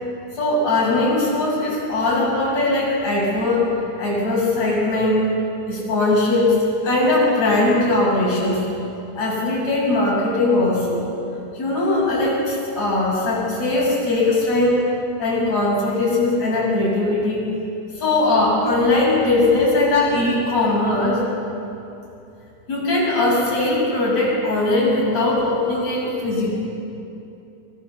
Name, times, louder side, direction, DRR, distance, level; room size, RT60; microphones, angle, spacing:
voice 1, 0.3-3.7 4.0-5.3 5.7-8.6 9.2-11.1 11.5-14.9 15.2-17.5 17.9-21.3 22.7-26.6, left 2 dB, 60° left, -4 dB, 8.0 m, -20 dB
25.0 x 23.5 x 7.2 m, 2.8 s
omnidirectional pair, 3.4 m